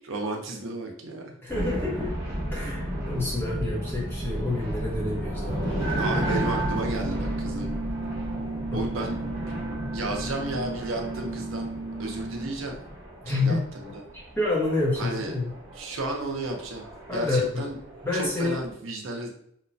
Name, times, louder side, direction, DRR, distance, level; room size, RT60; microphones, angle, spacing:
voice 1, 0.1-1.3 6.0-7.7 8.7-9.4 9.9-11.7 12.0-12.8 13.3-14.0 15.0-15.3 15.7-16.9 17.1-17.8 18.1-19.3, right 2 dB, 70° right, 2 dB, 0.5 m, -33 dB
voice 2, 1.4-2.1 2.5-5.8 8.7-8.8 13.2-13.6 14.4-15.5 17.1-17.6 18.0-18.6, left 2 dB, 10° left, -5 dB, 0.7 m, -28 dB
sound 1, 1.5-18.7, equal, 45° right, 1.0 m, -34 dB
sound 2, 5.8-12.4, right 3 dB, 35° left, 1.0 m, -34 dB
2.9 x 2.1 x 2.6 m, 0.69 s
head